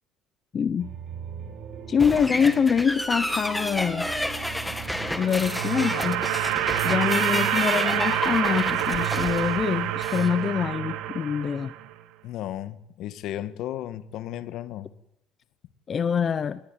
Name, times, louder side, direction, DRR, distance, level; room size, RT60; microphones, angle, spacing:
voice 1, 0.5-0.9 1.9-4.1 5.1-6.2 6.8-11.7 15.9-16.6, left 7 dB, 30° left, 0.8 m, -25 dB
sound 1, 0.8-9.0, right 6 dB, 55° right, 5.5 m, -42 dB
sound 2, 2.0-10.3, left 1 dB, 5° left, 1.8 m, -31 dB
sound 3, 4.8-12.0, right 13 dB, 80° right, 1.8 m, -27 dB
voice 2, 12.2-14.9, left 12 dB, 60° left, 1.6 m, -34 dB
20.5 x 18.5 x 9.1 m
cardioid pair, 150°, 0 cm